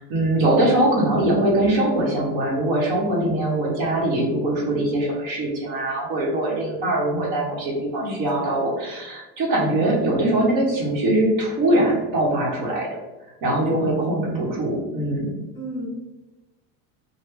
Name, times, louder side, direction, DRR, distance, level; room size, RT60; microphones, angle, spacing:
voice 1, 0.0-12.9 13.4-15.3, right 1 dB, 60° right, -2 dB, 1.1 m, -22 dB
voice 2, 8.0-8.6 15.5-15.9, left 1 dB, 10° left, -6 dB, 1.4 m, -34 dB
3.3 x 2.2 x 3.2 m, 1.1 s
supercardioid pair, 145°, 42 cm